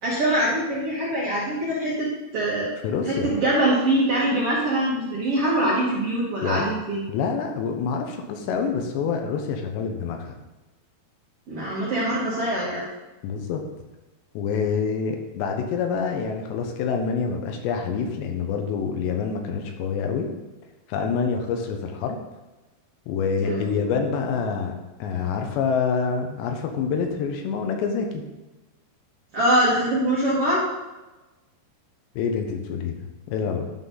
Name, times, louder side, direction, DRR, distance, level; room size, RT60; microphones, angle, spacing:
voice 1, 0.0-2.7 3.1-7.0 11.5-12.9 23.4-23.8 29.3-30.6, right 1 dB, 50° right, -7 dB, 1.8 m, -23 dB
voice 2, 2.8-3.3 6.4-6.7 7.1-10.3 13.2-13.6 14.3-20.3 20.9-22.2 23.1-28.2 32.2-33.7, left 6 dB, 80° left, 4 dB, 3.1 m, -26 dB
11.5 x 5.9 x 3.9 m, 1.1 s
omnidirectional pair, 5.0 m